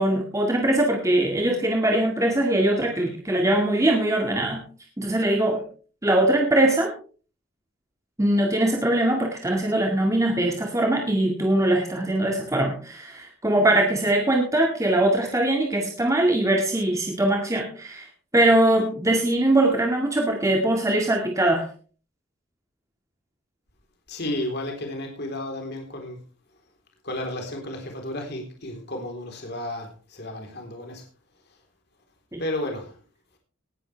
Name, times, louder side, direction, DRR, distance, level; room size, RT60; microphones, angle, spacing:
voice 1, 0.0-4.6 5.0-5.6 6.0-6.9 8.2-18.1 18.3-21.7 32.3-32.4, right 1 dB, 15° right, 1 dB, 2.0 m, -22 dB
voice 2, 24.1-26.2 27.0-31.0 32.4-33.0, left 1 dB, 60° left, 2 dB, 3.8 m, -32 dB
19.0 x 11.5 x 3.4 m, 0.39 s
head